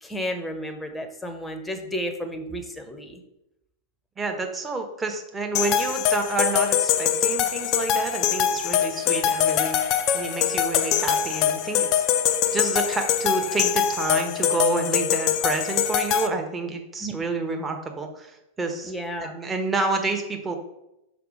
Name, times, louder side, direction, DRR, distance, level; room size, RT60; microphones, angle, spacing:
voice 1, 0.0-3.2 17.0-17.1 18.8-19.3, equal, 5° left, 6 dB, 1.0 m, -32 dB
voice 2, 4.2-12.2 12.5-18.9 19.2-20.6, right 3 dB, 15° right, 3 dB, 1.3 m, -29 dB
sound 1, 5.5-16.3, left 9 dB, 40° left, 0.6 m, -23 dB
5.9 x 4.9 x 5.0 m, 0.88 s
figure-of-eight pair, 90°, 0 cm